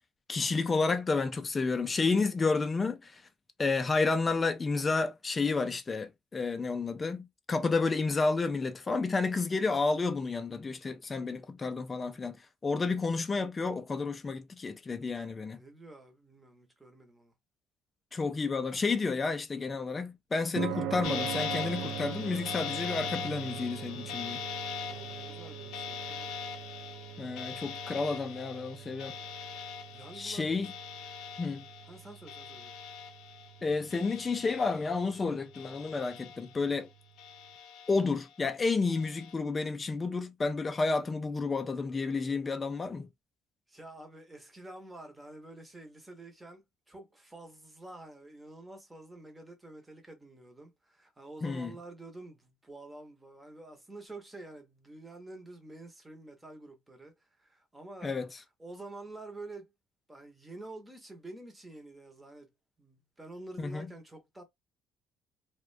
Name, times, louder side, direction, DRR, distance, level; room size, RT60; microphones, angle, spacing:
voice 1, 0.3-3.2 3.6-12.4 12.6-15.6 18.1-24.4 27.2-29.1 30.2-30.7 31.4-31.6 33.6-36.9 37.9-43.1 51.4-51.7 58.0-58.3 63.6-63.9, left 4 dB, 20° left, 0.3 m, -31 dB
voice 2, 15.5-17.3 24.9-26.3 29.9-30.5 31.9-32.8 43.7-58.1 58.6-59.7 60.1-62.5 62.8-64.4, right 2 dB, 10° right, 0.8 m, -48 dB
sound 1, 20.6-37.1, right 10 dB, 80° right, 0.4 m, -43 dB
sound 2, 21.0-33.6 33.9-35.1 35.5-36.8 37.2-38.2 38.8-39.3, left 7 dB, 90° left, 0.6 m, -41 dB
2.3 x 2.1 x 2.4 m
cardioid pair, 140°, 0 cm